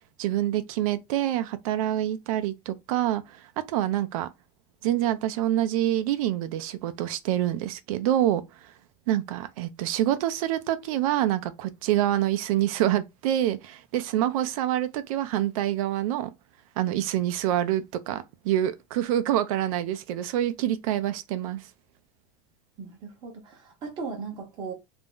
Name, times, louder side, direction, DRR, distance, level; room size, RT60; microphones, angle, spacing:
voice 1, 0.2-4.3 4.8-8.7 9.1-16.3 16.8-21.7, right 12 dB, 70° right, 0.4 m, -26 dB
voice 2, 22.8-24.7, right 4 dB, 25° right, 0.8 m, -37 dB
2.5 x 2.1 x 3.6 m
supercardioid pair, 175°, 19 cm